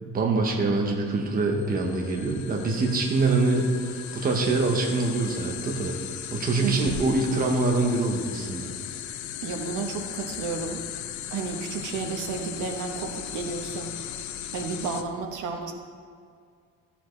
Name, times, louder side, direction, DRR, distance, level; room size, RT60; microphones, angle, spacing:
voice 1, 0.0-5.9 6.3-8.7, right 3 dB, 30° right, 1 dB, 1.0 m, -25 dB
sound 1, 1.4-15.0, left 10 dB, 70° left, 0.6 m, -37 dB
voice 2, 6.6-7.0 9.4-10.8 11.3-13.9 14.5-15.7, right 4 dB, 75° right, 4 dB, 1.1 m, -32 dB
14.0 x 7.1 x 3.2 m, 2.2 s
cardioid pair, 165°, 30 cm